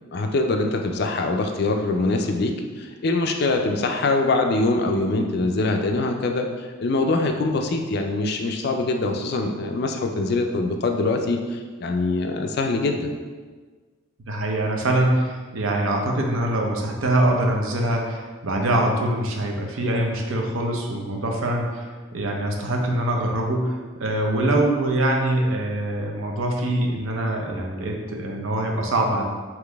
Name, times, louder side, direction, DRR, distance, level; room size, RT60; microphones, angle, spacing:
voice 1, 0.1-2.5 2.8-13.1, left 2 dB, 50° left, 4 dB, 0.3 m, -23 dB
voice 2, 14.3-29.2, right 1 dB, 70° right, 1 dB, 0.6 m, -24 dB
3.9 x 2.9 x 3.4 m, 1.4 s
head